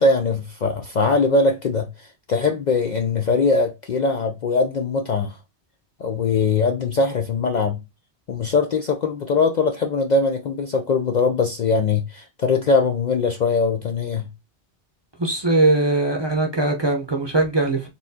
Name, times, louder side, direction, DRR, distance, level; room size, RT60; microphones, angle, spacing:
voice 1, 0.0-5.4 6.0-7.8 8.3-14.3, left 4 dB, 55° left, 0.5 m, -21 dB
voice 2, 15.2-17.9, right 2 dB, 25° right, 0.7 m, -20 dB
4.1 x 3.6 x 2.7 m
omnidirectional pair, 1.1 m